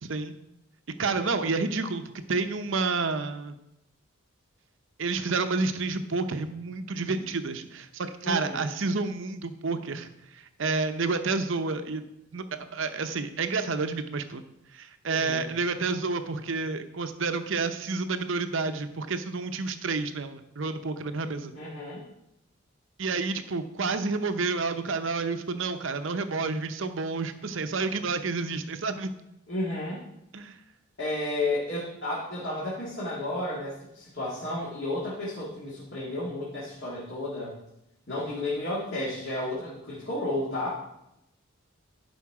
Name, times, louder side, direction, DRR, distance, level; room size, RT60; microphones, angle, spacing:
voice 1, 0.0-0.4 1.0-3.6 5.0-12.0 12.3-14.4 14.7-21.5 23.0-29.1 30.3-30.6, right 4 dB, 60° right, 9 dB, 0.7 m, -30 dB
voice 2, 8.2-8.7 15.1-15.5 21.5-22.0 29.5-30.0 31.0-37.6 38.1-40.9, left 1 dB, 55° left, -7 dB, 2.1 m, -32 dB
11.5 x 5.2 x 4.8 m, 0.85 s
head